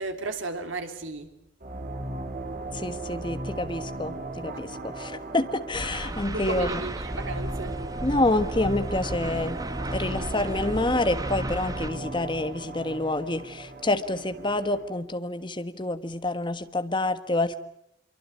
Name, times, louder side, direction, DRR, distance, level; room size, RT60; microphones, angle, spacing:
voice 1, 0.0-1.4 6.3-7.8, right 3 dB, 85° right, 3.1 m, -34 dB
sound 1, 1.6-14.9, right 2 dB, 45° right, 4.2 m, -36 dB
voice 2, 2.7-6.8 8.0-9.6 9.9-17.6, left 2 dB, 25° left, 1.4 m, -28 dB
sound 2, 5.7-11.9, right 1 dB, 20° right, 1.4 m, -35 dB
25.5 x 24.0 x 8.4 m
head